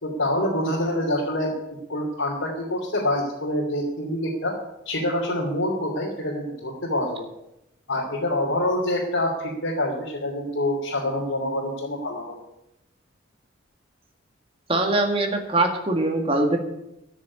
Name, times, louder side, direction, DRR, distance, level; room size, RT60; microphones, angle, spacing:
voice 1, 0.0-4.6 4.8-7.3 7.9-12.3, left 1 dB, 80° left, -4 dB, 2.9 m, -26 dB
voice 2, 14.7-16.6, right 2 dB, 25° right, 3 dB, 2.0 m, -22 dB
13.5 x 6.6 x 9.7 m, 0.86 s
head